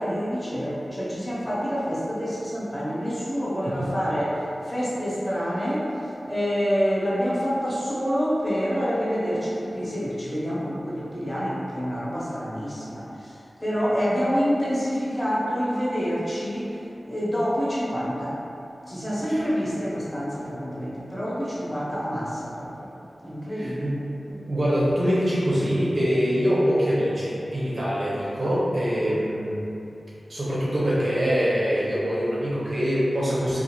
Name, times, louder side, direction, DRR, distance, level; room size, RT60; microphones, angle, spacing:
voice 1, 0.0-18.4 18.9-22.9 23.2-24.0 29.0-29.2, equal, 20° left, -9 dB, 0.8 m, -27 dB
voice 2, 23.6-23.9 24.3-29.6 30.3-33.6, equal, 55° right, -9 dB, 0.6 m, -24 dB
2.5 x 2.4 x 2.9 m, 2.8 s
wide cardioid pair, 90°, 0 cm